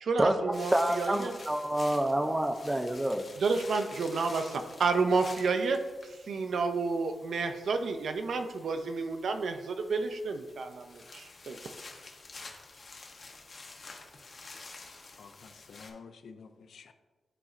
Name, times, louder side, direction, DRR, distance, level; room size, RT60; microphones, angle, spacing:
voice 1, 0.0-1.3 3.4-5.8 6.3-11.6, right 4 dB, 65° right, 0.5 m, -30 dB
sound 1, 0.5-15.9, left 3 dB, 40° left, 0.7 m, -49 dB
voice 2, 0.7-3.3, right 1 dB, 10° right, 0.4 m, -27 dB
voice 3, 15.2-16.9, left 5 dB, 70° left, 0.4 m, -50 dB
9.9 x 4.2 x 2.4 m
wide cardioid pair, 155°, 0 cm